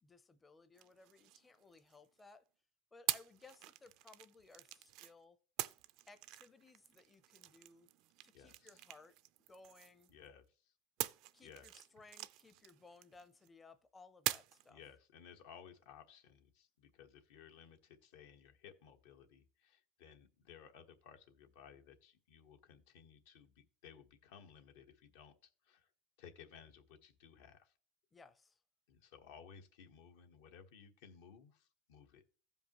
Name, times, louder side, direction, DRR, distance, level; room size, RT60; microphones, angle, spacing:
voice 1, 0.0-2.4 2.9-5.4 6.1-7.9 8.2-9.2 9.5-10.1 11.3-14.8 28.1-28.6, left 3 dB, 20° left, 0.6 m, -61 dB
sound 1, 0.8-2.2 3.1-5.1 5.6-10.3 11.0-13.5 14.3-14.7, right 16 dB, 65° right, 0.4 m, -45 dB
voice 2, 8.3-8.8 10.1-10.4 11.4-11.7 14.7-25.9 26.2-27.7 28.9-32.2, left 7 dB, 80° left, 1.2 m, -59 dB
15.5 x 5.3 x 3.0 m
supercardioid pair, 120°, 0 cm